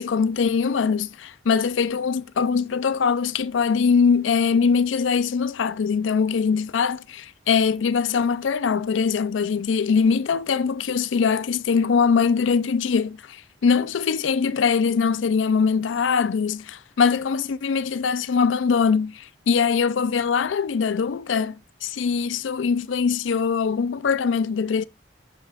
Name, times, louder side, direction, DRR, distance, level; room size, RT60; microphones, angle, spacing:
voice 1, 0.0-21.6 21.8-24.8, left 5 dB, 85° left, 0.5 m, -22 dB
11.5 x 5.5 x 2.4 m
head